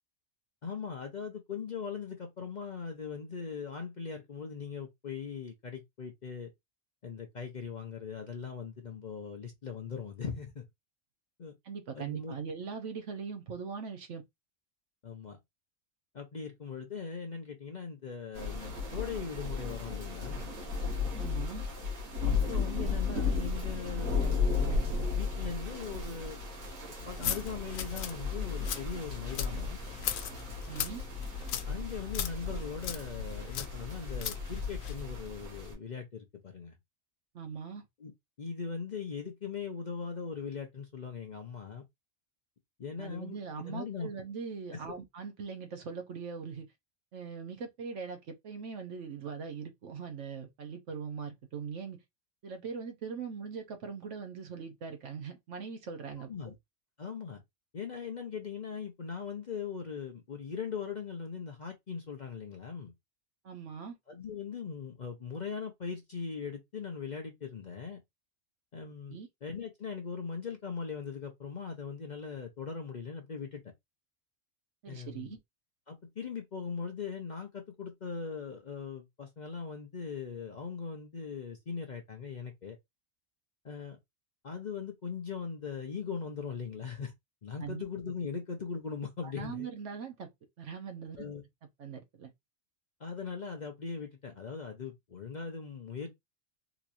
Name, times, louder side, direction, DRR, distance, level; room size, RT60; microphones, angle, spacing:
voice 1, 0.6-6.5 7.0-10.7 11.4-11.5 11.9-12.4 15.0-15.4 16.1-20.5 22.2-26.4 26.9-29.8 31.7-36.8 38.0-38.1 38.4-41.8 42.8-43.4 43.6-44.1 44.7-45.0 56.1-56.6 57.0-57.4 57.7-62.9 64.1-68.0 68.7-73.6 74.9-75.4 75.9-82.8 83.6-84.0 84.4-87.1 87.4-89.7 91.2-91.4 93.0-96.1, left 6 dB, 45° left, 0.6 m, -40 dB
voice 2, 11.6-14.2 21.2-21.6 30.7-31.0 37.3-37.8 43.0-46.7 47.1-52.0 52.4-56.3 63.4-63.9 69.1-69.3 74.8-75.4 87.6-87.8 89.2-90.3 90.6-91.3 91.8-92.3, right 6 dB, 65° right, 1.1 m, -41 dB
sound 1, 18.3-35.7, left 4 dB, 85° right, 1.8 m, -35 dB
sound 2, 27.0-35.0, left 9 dB, 85° left, 1.0 m, -39 dB
3.8 x 2.9 x 2.5 m
omnidirectional pair, 1.4 m